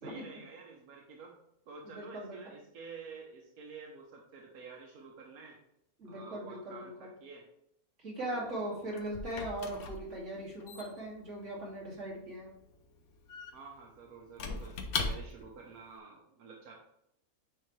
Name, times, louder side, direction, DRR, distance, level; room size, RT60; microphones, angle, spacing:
voice 1, 0.0-1.4 1.7-5.6 6.0-7.4 8.2-9.0 13.5-16.7, right 4 dB, 90° right, 0 dB, 1.4 m, -50 dB
voice 2, 1.8-2.4 6.0-7.1 8.0-12.5, right 1 dB, 55° right, -4 dB, 2.5 m, -39 dB
Squeak / Wood, 8.4-15.6, left 4 dB, 85° left, 1.3 m, -41 dB
9.3 x 3.7 x 3.2 m, 0.77 s
omnidirectional pair, 1.5 m